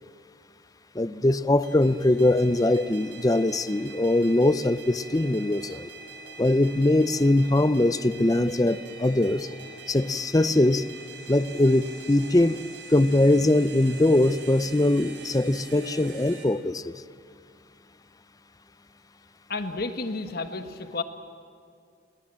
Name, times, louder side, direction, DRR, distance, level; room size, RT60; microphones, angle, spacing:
voice 1, 0.9-5.9 6.4-9.5 9.9-10.9 11.3-12.6 12.9-16.9, left 1 dB, 20° left, 14 dB, 0.6 m, -22 dB
sound 1, 1.6-16.4, right 3 dB, 70° right, 4.8 m, -44 dB
voice 2, 19.5-21.0, left 3 dB, 55° left, 8 dB, 1.5 m, -31 dB
29.5 x 21.5 x 7.6 m, 2.3 s
head